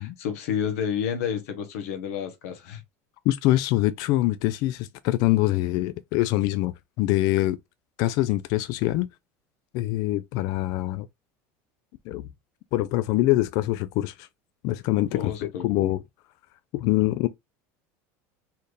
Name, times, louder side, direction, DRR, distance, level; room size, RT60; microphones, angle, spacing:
voice 1, 0.0-2.8 15.1-15.9, left 8 dB, 90° left, 1.2 m, -30 dB
voice 2, 3.3-7.6 8.0-9.1 9.7-11.1 12.1-12.3 12.7-14.3 14.6-16.0 16.7-17.3, left 16 dB, 60° left, 0.4 m, -24 dB
4.2 x 2.6 x 3.2 m
cardioid pair, 145°, 8 cm